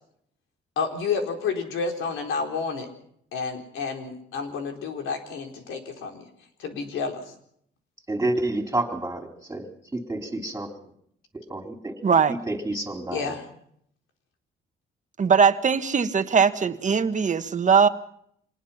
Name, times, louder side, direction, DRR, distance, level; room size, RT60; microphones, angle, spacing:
voice 1, 0.8-2.9 3.3-6.2 6.6-7.2 13.1-13.4, left 5 dB, 85° left, 4 dB, 4.3 m, -30 dB
voice 2, 8.1-10.7 11.5-11.9 12.3-13.3, right 2 dB, 10° right, 4 dB, 4.3 m, -29 dB
voice 3, 12.0-12.4 15.2-17.9, right 6 dB, 40° right, 10 dB, 1.5 m, -20 dB
26.0 x 20.0 x 5.9 m, 0.68 s
cardioid pair, 90°, 20 cm